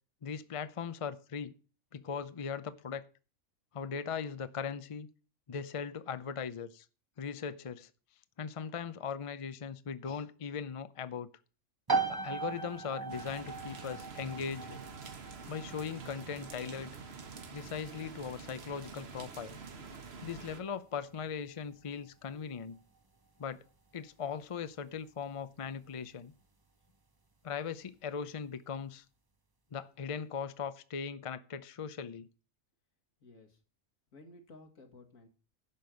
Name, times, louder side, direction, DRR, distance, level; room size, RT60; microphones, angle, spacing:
voice 1, 0.2-1.5 1.9-3.0 3.7-5.1 5.5-6.9 7.2-7.9 8.4-11.3 12.1-14.8 15.5-16.9 17.5-19.6 20.2-22.8 23.4-23.6 23.9-26.3 27.4-29.0 29.7-32.3, left 6 dB, 40° left, 0.5 m, -39 dB
sound 1, 11.9-26.4, right 4 dB, 20° right, 0.7 m, -41 dB
sound 2, 13.1-20.6, right 5 dB, 50° right, 1.4 m, -47 dB
voice 2, 33.2-33.6 34.1-35.3, left 2 dB, 75° left, 2.4 m, -55 dB
11.0 x 5.4 x 7.8 m
omnidirectional pair, 1.4 m